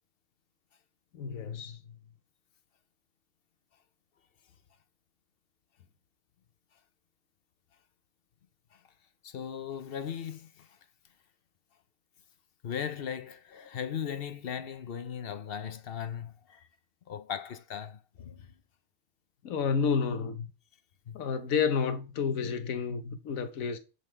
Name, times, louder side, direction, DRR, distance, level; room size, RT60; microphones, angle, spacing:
voice 1, 1.1-1.8 19.4-20.5 21.1-23.8, left 6 dB, 90° left, 1.3 m, -30 dB
voice 2, 9.2-10.8 12.6-16.7 17.1-18.5 21.1-21.2 22.3-22.5, left 8 dB, 55° left, 0.8 m, -38 dB
9.7 x 3.9 x 4.5 m
omnidirectional pair, 1.4 m